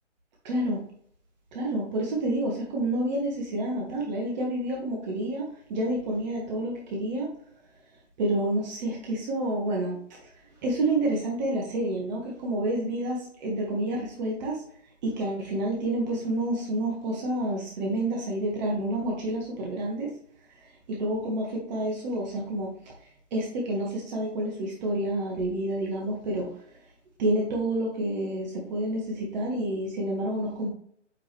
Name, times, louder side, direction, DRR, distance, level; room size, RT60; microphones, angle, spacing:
voice 1, 0.4-0.8 1.5-7.3 8.2-10.0 10.6-14.6 15.0-20.1 20.9-22.7 23.3-26.5 27.2-30.7, right 1 dB, 35° right, -1 dB, 1.6 m, -29 dB
8.4 x 3.8 x 3.2 m, 0.63 s
hypercardioid pair, 140°, 37 cm